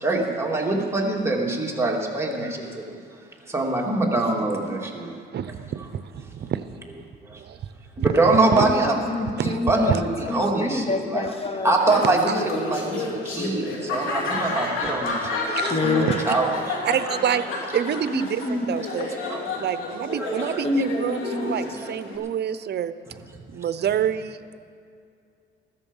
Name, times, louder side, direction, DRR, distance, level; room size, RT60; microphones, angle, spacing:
voice 1, 0.0-2.8 3.5-5.1 8.0-8.9 9.4-16.5 19.3-19.4 20.1-20.6 21.0-21.1, right 2 dB, 10° right, -2 dB, 2.6 m, -24 dB
voice 2, 5.3-6.6 7.4-7.6 8.0-8.1 8.5-8.7 9.4-10.0 10.3-10.4 12.3-12.4 15.5-15.8 16.1-16.4 16.8-17.5 17.7-19.1 19.6-22.9 23.5-24.6, right 9 dB, 55° right, 13 dB, 0.7 m, -27 dB
voice 3, 8.6-11.7 15.7-16.1 18.1-18.7 20.6-21.6, left 2 dB, 30° left, 5 dB, 1.8 m, -26 dB
Laughter, 11.8-22.2, left 3 dB, 75° left, 3.2 m, -30 dB
15.0 x 13.5 x 5.5 m, 2.3 s
cardioid pair, 90°, 21 cm